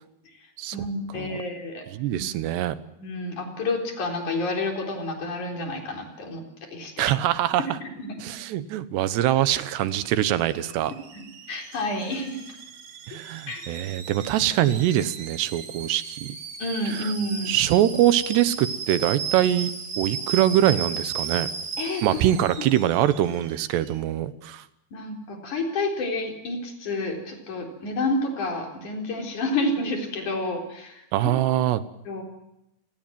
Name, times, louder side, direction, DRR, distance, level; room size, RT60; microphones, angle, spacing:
voice 1, 0.7-1.8 2.1-2.2 3.0-6.4 6.7-7.1 7.6-8.1 11.1-12.4 13.5-13.6 16.6-17.6 21.8-22.2 22.6-22.7 24.9-31.0 32.1-32.2, left 2 dB, 50° left, 3 dB, 5.2 m, -29 dB
voice 2, 1.9-2.8 7.0-7.8 8.2-11.0 13.1-16.4 16.9-17.1 17.5-19.7 20.0-21.5 22.0-24.6 31.1-31.8, right 12 dB, 90° right, 14 dB, 3.3 m, -23 dB
Alarm / Boiling, 9.1-24.0, right 6 dB, 70° right, 4.7 m, -36 dB
29.5 x 18.5 x 9.2 m, 0.87 s
omnidirectional pair, 4.7 m